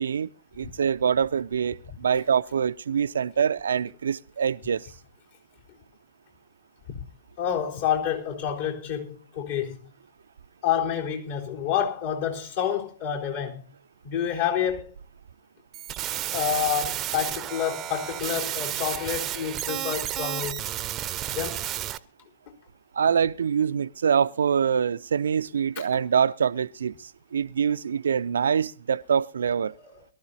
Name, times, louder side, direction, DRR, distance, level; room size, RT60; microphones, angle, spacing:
voice 1, 0.0-4.9 22.9-29.7, right 7 dB, 70° right, 0.6 m, -25 dB
voice 2, 7.4-9.8 10.6-13.6 14.0-14.9 16.3-20.7 21.3-21.7 25.8-25.9, left 9 dB, 50° left, 4.1 m, -28 dB
sound 1, 15.7-22.0, right 12 dB, 25° right, 0.8 m, -32 dB
22.5 x 13.0 x 2.8 m
figure-of-eight pair, 110°, 0 cm